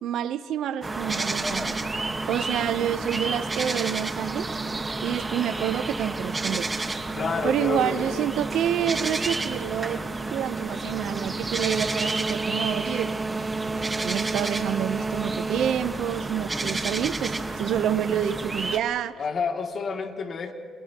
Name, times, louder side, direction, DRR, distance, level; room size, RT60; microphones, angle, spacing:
voice 1, 0.0-1.8 2.3-4.5 5.0-6.7 7.4-10.0 10.3-13.1 14.0-19.2, right 10 dB, 80° right, 13 dB, 0.8 m, -28 dB
sound 1, 0.8-18.8, right 3 dB, 25° right, 1.5 m, -30 dB
sound 2, 0.9-17.6, left 1 dB, 10° left, 1.4 m, -43 dB
voice 2, 7.1-8.3 19.2-20.5, left 5 dB, 50° left, 3 dB, 2.6 m, -29 dB
30.0 x 29.0 x 3.0 m, 2.5 s
cardioid pair, 90°, 0 cm